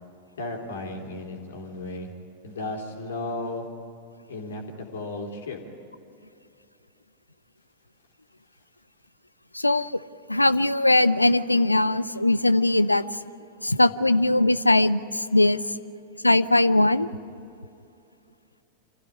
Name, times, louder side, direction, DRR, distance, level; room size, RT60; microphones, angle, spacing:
voice 1, 0.4-2.1 2.4-3.7 4.3-5.6 14.0-14.1, left 2 dB, 65° left, 2 dB, 3.5 m, -34 dB
voice 2, 9.5-10.0 10.3-13.0 13.6-15.6 16.2-17.1, left 2 dB, 85° left, 17 dB, 0.5 m, -20 dB
26.0 x 15.5 x 10.0 m, 2.7 s
figure-of-eight pair, 90°, 0 cm